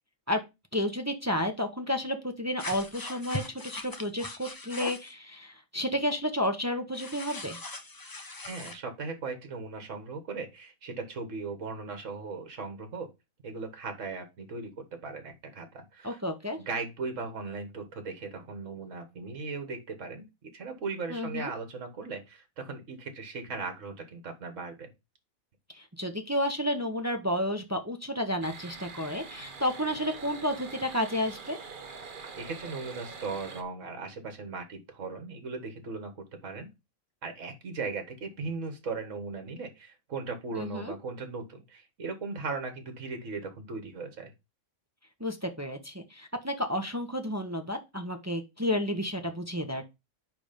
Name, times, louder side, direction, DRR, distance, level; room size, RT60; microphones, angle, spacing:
voice 1, 0.7-7.6 16.0-16.6 21.1-21.5 25.7-31.6 40.5-40.9 45.2-49.8, left 1 dB, 15° right, 5 dB, 0.9 m, -31 dB
sound 1, 2.6-5.1 6.9-8.8, left 2 dB, 20° left, 0.6 m, -40 dB
voice 2, 8.5-13.1 13.4-16.2 16.6-20.3 20.5-24.9 32.4-36.7 37.2-44.3, right 4 dB, 65° right, 7 dB, 1.8 m, -38 dB
sound 2, 28.4-33.6, right 5 dB, 40° right, 1.0 m, -44 dB
9.7 x 3.5 x 5.1 m, 0.24 s
omnidirectional pair, 1.4 m